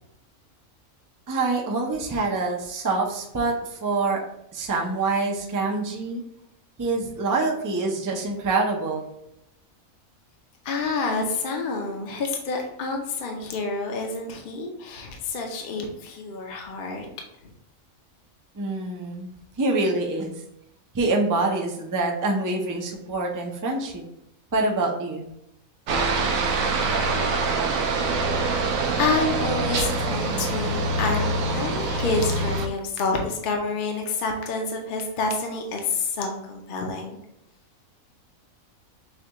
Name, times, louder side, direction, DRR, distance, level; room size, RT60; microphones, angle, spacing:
voice 1, 1.3-4.2 4.5-6.2 6.8-9.1 18.6-19.3 19.6-20.3 20.9-24.0 24.5-25.3, right 3 dB, 30° right, 0 dB, 0.3 m, -25 dB
voice 2, 10.6-17.1 17.4-17.5 28.4-28.7 29.0-37.2, left 3 dB, 45° left, 2 dB, 0.7 m, -28 dB
Aircraft, 25.9-32.7, right 3 dB, 80° right, 1.0 m, -24 dB
6.5 x 2.3 x 2.9 m, 0.81 s
omnidirectional pair, 1.4 m